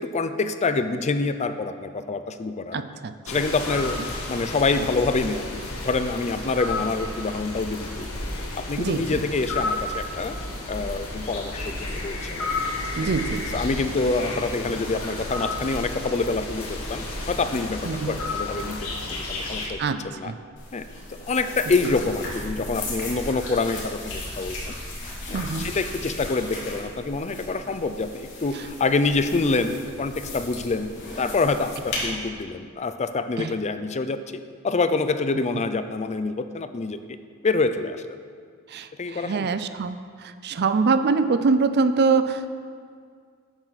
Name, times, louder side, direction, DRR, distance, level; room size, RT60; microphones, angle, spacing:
voice 1, 0.0-2.8 3.3-4.0 4.3-5.4 5.8-8.1 8.5-10.4 10.7-12.5 13.0-13.1 13.5-20.3 20.7-20.8 21.3-24.7 25.3-30.9 31.2-37.2 37.4-38.0 39.0-39.5, left 3 dB, 30° left, 10 dB, 0.5 m, -26 dB
voice 2, 2.7-3.2 8.8-9.2 13.0-13.6 17.8-18.2 19.8-20.4 21.8-21.9 25.3-25.8 28.5-28.7 33.4-33.6 38.7-42.5, right 4 dB, 50° right, 11 dB, 0.5 m, -24 dB
sound 1, 3.3-19.7, left 2 dB, 80° left, 1.7 m, -32 dB
sound 2, 20.6-32.1, left 2 dB, 60° left, 2.9 m, -36 dB
12.5 x 9.0 x 4.1 m, 2.1 s
head